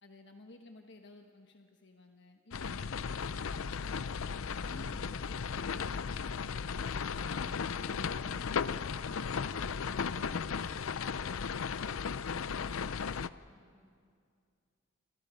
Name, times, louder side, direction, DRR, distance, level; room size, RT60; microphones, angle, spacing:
voice 1, 0.0-4.3 4.6-6.7 7.0-12.6, left 1 dB, 60° left, 4 dB, 1.3 m, -56 dB
sound 1, 2.5-13.3, left 6 dB, 80° left, 0.6 m, -36 dB
voice 2, 13.4-13.9, left 1 dB, 15° left, -2 dB, 6.5 m, -67 dB
27.5 x 27.0 x 5.2 m, 2.2 s
head